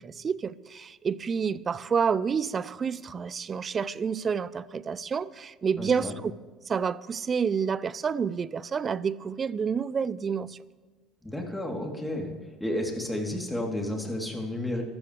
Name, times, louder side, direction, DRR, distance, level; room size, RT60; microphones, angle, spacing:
voice 1, 0.0-6.3 6.7-10.6, right 6 dB, 35° right, 0.6 m, -29 dB
voice 2, 5.8-6.1 11.2-12.3 12.6-14.8, left 1 dB, 5° left, 3.5 m, -31 dB
24.0 x 13.5 x 3.4 m
hypercardioid pair, 65°, 0 cm